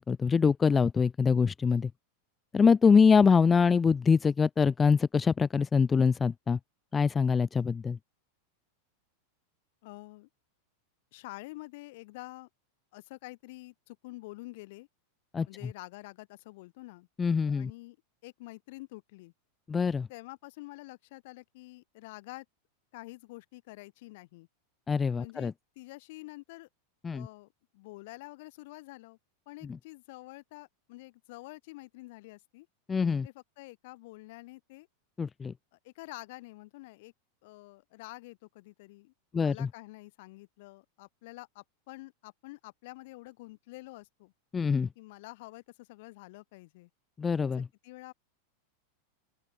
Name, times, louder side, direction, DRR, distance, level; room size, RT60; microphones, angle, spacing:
voice 1, 0.0-1.9 2.5-6.6 6.9-8.0 15.3-15.5 17.2-17.7 19.7-20.1 24.9-25.5 27.0-27.3 32.9-33.3 35.2-35.5 39.3-39.7 44.5-44.9 47.2-47.7, left 5 dB, 20° left, 1.4 m, -24 dB
voice 2, 9.8-10.3 11.1-12.5 12.9-14.9 15.5-17.1 17.5-18.0 18.2-19.3 20.1-22.4 22.9-24.5 25.1-26.7 27.1-29.2 29.5-32.7 33.2-34.9 35.8-37.1 37.4-44.3 44.9-46.9 47.8-48.1, left 21 dB, 60° left, 6.6 m, -48 dB
open air
hypercardioid pair, 100°, 0 cm